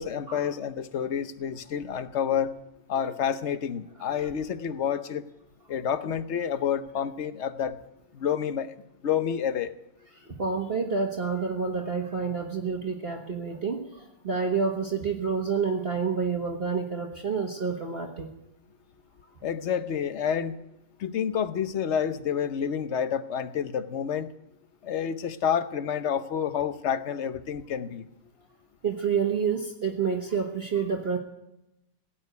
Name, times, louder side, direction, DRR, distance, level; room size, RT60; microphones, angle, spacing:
voice 1, 0.0-2.5 2.9-5.2 5.7-7.8 8.1-8.7 9.0-9.7 19.4-20.6 21.0-24.3 24.8-28.0, left 8 dB, 50° left, 11 dB, 0.9 m, -29 dB
voice 2, 10.4-18.3 28.8-31.2, right 5 dB, 35° right, 1 dB, 1.5 m, -28 dB
17.5 x 8.9 x 9.3 m, 0.88 s
omnidirectional pair, 2.0 m